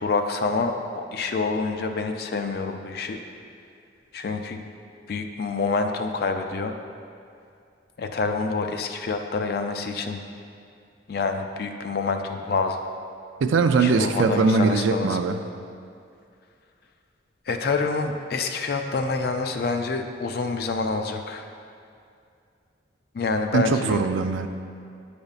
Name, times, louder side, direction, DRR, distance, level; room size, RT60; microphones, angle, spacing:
voice 1, 0.0-3.2 4.1-4.6 5.1-6.7 8.0-10.2 11.1-12.8 13.8-15.2 17.5-21.5 23.1-24.0, left 4 dB, 55° left, 5 dB, 0.4 m, -27 dB
voice 2, 13.4-15.4 23.5-24.5, right 4 dB, 90° right, 8 dB, 0.4 m, -21 dB
9.7 x 5.1 x 2.4 m, 2.4 s
head